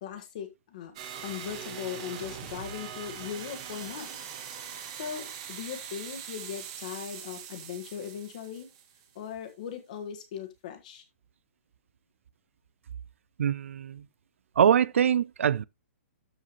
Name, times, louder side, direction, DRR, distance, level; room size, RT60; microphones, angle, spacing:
voice 1, 0.0-0.9 1.2-4.1 5.0-8.7 9.1-11.0, left 9 dB, 35° left, 1.6 m, -39 dB
sound 1, 1.0-9.3, right 8 dB, 25° right, 1.4 m, -42 dB
voice 2, 13.4-14.1 14.6-15.6, right 8 dB, 70° right, 0.4 m, -23 dB
13.0 x 4.9 x 3.1 m
hypercardioid pair, 180°, 7 cm